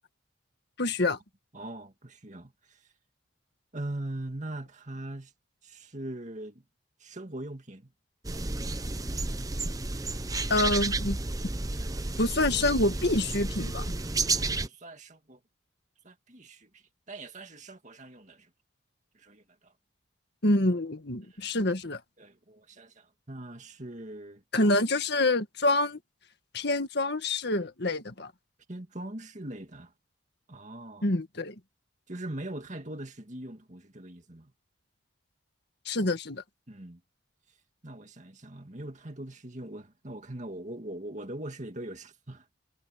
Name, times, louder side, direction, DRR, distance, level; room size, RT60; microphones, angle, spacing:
voice 1, 0.8-1.2 10.5-11.2 12.2-13.8 20.4-22.0 24.5-26.0 26.5-28.3 31.0-31.6 35.9-36.4, left 2 dB, 55° left, 1.8 m, -26 dB
voice 2, 1.5-2.8 3.7-5.3 5.6-6.6 7.0-7.9 11.7-12.0 14.2-15.4 16.0-18.5 19.1-19.7 21.2-21.5 22.2-24.4 28.7-29.9 30.5-31.1 32.1-34.5 36.7-37.0 37.8-42.5, right 1 dB, 35° right, 2.2 m, -41 dB
sound 1, 8.2-14.7, right 3 dB, 20° right, 0.8 m, -31 dB
head